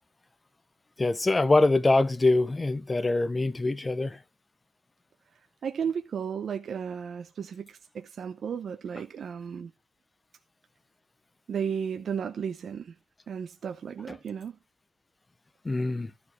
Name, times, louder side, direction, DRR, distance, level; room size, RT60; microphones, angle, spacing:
voice 1, 1.0-4.2 15.6-16.1, left 2 dB, 15° left, 0.5 m, -24 dB
voice 2, 5.6-9.7 11.5-12.9 13.3-14.6, right 7 dB, 35° right, 0.7 m, -34 dB
12.5 x 4.9 x 4.6 m
cardioid pair, 145°, 0 cm